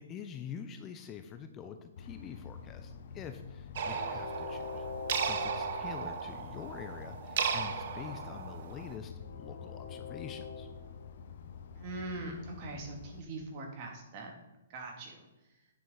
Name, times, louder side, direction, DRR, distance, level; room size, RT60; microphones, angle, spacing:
voice 1, 0.0-4.9 5.2-10.7, left 7 dB, 25° left, 7 dB, 0.6 m, -46 dB
Train, 2.0-13.2, left 5 dB, 60° left, 1.1 m, -45 dB
sound 1, 3.8-9.0, right 6 dB, 55° right, 1.0 m, -36 dB
voice 2, 11.8-14.3 14.7-15.3, right 2 dB, 40° right, 1 dB, 2.4 m, -42 dB
9.4 x 7.0 x 4.0 m, 0.99 s
hypercardioid pair, 140°, 0 cm